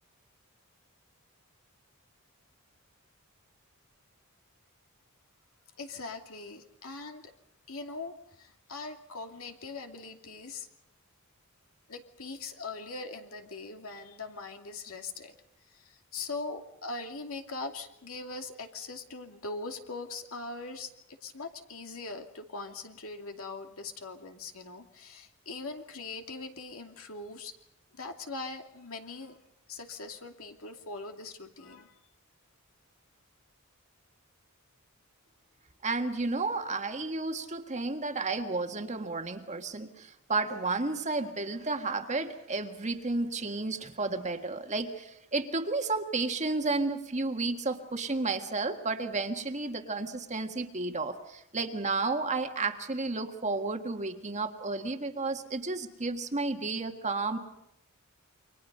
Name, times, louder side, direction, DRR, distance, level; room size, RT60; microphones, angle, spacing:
voice 1, 5.8-7.3 7.7-10.7 11.9-15.3 15.7-27.5 27.9-29.4 29.7-31.9, left 3 dB, 70° left, 4 dB, 2.7 m, -41 dB
voice 2, 35.8-57.4, right 3 dB, 30° right, 6 dB, 1.7 m, -32 dB
29.0 x 24.5 x 5.5 m, 0.75 s
head